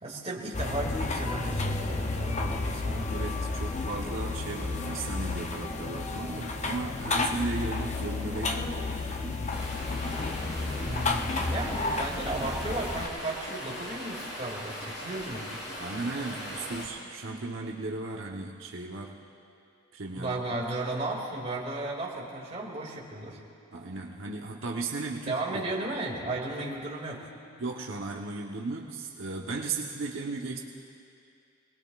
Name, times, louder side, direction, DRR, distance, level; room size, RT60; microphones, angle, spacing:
voice 1, 0.0-3.1 10.8-15.5 20.1-23.4 25.3-27.3, right 2 dB, 30° right, -4 dB, 2.3 m, -34 dB
sound 1, 0.5-13.1, left 3 dB, 35° left, 0.6 m, -31 dB
voice 2, 3.1-9.4 15.8-19.2 19.9-20.3 23.7-25.6 27.6-30.6, right 3 dB, 75° right, -2 dB, 1.1 m, -36 dB
Stream, 9.5-16.9, equal, 55° left, 3.6 m, -40 dB
26.0 x 20.0 x 2.5 m, 2.5 s
head